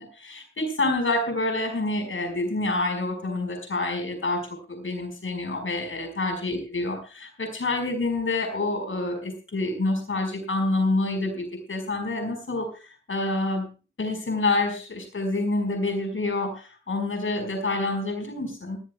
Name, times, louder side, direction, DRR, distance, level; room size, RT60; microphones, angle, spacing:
voice 1, 0.0-13.7 14.0-18.8, left 2 dB, 85° left, 5 dB, 5.0 m, -27 dB
19.5 x 17.5 x 2.3 m, 0.35 s
wide cardioid pair, 90°, 20 cm